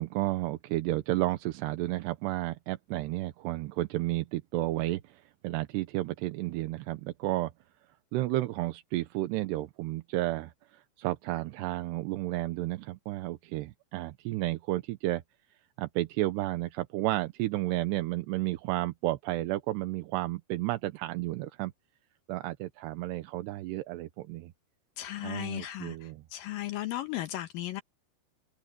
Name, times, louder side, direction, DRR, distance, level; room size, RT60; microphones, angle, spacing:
voice 1, 0.0-7.5 8.1-15.2 15.8-21.7 22.3-24.5 25.2-26.2, right 17 dB, 80° right, 2.9 m, -32 dB
voice 2, 25.0-27.8, left 14 dB, 70° left, 2.2 m, -36 dB
omnidirectional pair, 5.0 m